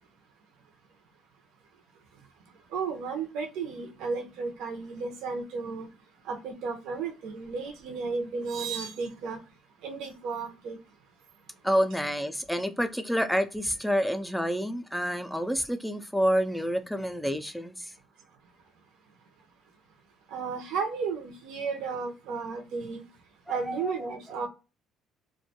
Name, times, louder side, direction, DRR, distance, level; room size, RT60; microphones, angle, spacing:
voice 1, 2.7-5.9 6.2-9.4 9.8-10.8 20.3-23.0 23.5-24.5, right 5 dB, 80° right, 0.6 m, -33 dB
voice 2, 11.6-17.9 23.7-24.1, equal, ahead, 0.3 m, -28 dB
2.4 x 2.2 x 2.7 m
cardioid pair, 125°, 0 cm